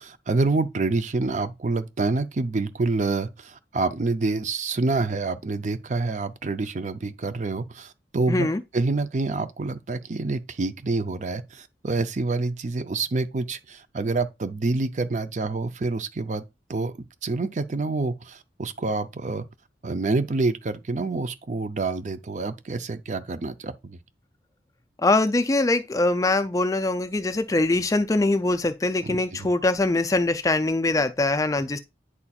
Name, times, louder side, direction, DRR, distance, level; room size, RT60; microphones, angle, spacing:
voice 1, 0.0-16.9 17.2-19.4 19.8-24.0 29.0-29.5, right 3 dB, 45° right, 0.5 m, -27 dB
voice 2, 8.3-8.6 25.0-31.8, left 2 dB, 20° left, 0.4 m, -23 dB
9.6 x 4.2 x 2.4 m
head